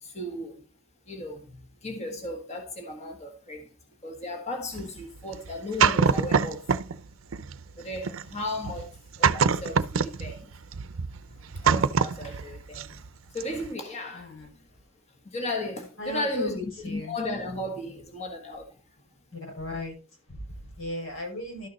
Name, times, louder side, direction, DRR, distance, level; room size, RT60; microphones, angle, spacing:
voice 1, 0.0-0.5 1.1-1.5 1.8-3.6 4.0-6.6 7.8-8.9 9.2-10.4 11.6-13.0 13.3-14.3 15.3-18.6, left 1 dB, 35° left, 1.4 m, -35 dB
sound 1, 4.7-7.0 7.3-13.1 13.4-13.7, right 6 dB, 85° right, 0.6 m, -25 dB
voice 2, 14.1-14.5 16.0-17.2 19.3-20.0 20.3-21.7, left 1 dB, 85° left, 6.0 m, -36 dB
12.5 x 6.4 x 4.1 m
head